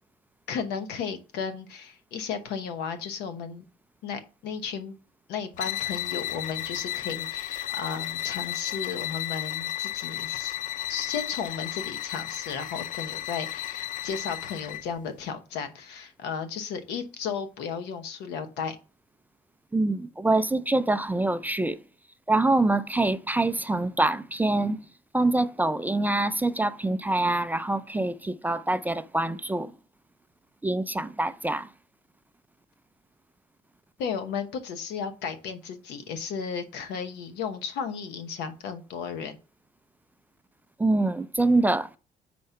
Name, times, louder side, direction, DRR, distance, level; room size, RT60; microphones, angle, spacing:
voice 1, 0.5-3.6 4.0-4.9 5.3-10.6 10.9-18.8 34.0-39.4, left 6 dB, 85° left, 1.0 m, -34 dB
sound 1, 5.5-14.9, left 13 dB, 50° left, 0.4 m, -33 dB
voice 2, 19.7-21.8 22.3-24.8 25.1-29.7 30.6-31.7 40.8-41.9, right 2 dB, 10° right, 0.3 m, -25 dB
4.7 x 4.3 x 5.6 m
cardioid pair, 110°, 17 cm